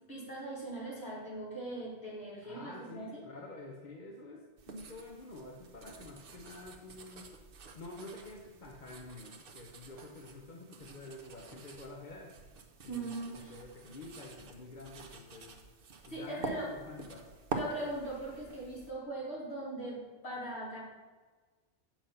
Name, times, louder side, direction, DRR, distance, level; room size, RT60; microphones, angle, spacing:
voice 1, 0.1-3.1 12.9-13.5 16.1-16.7 17.5-20.0 20.2-20.8, right 2 dB, 65° left, -6 dB, 3.2 m, -40 dB
voice 2, 2.4-7.2 7.7-12.3 12.8-15.5 16.0-17.3, left 2 dB, 45° left, 0 dB, 1.0 m, -48 dB
sound 1, 4.6-18.9, right 4 dB, 55° right, 1.0 m, -47 dB
7.2 x 5.8 x 5.7 m, 1.4 s
omnidirectional pair, 1.2 m